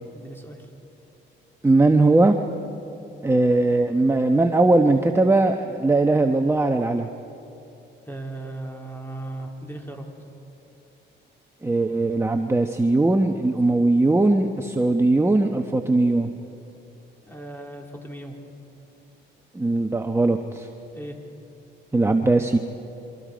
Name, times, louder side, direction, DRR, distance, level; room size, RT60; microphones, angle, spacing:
voice 1, 0.1-0.7 8.1-10.1 17.3-18.4 20.9-21.2, right 2 dB, 10° left, 1 dB, 3.5 m, -37 dB
voice 2, 1.6-2.4 3.2-7.1 11.6-16.3 19.5-20.7 21.9-22.6, right 2 dB, 15° right, 5 dB, 1.0 m, -19 dB
29.0 x 24.5 x 5.2 m, 2.9 s
cardioid pair, 90°, 20 cm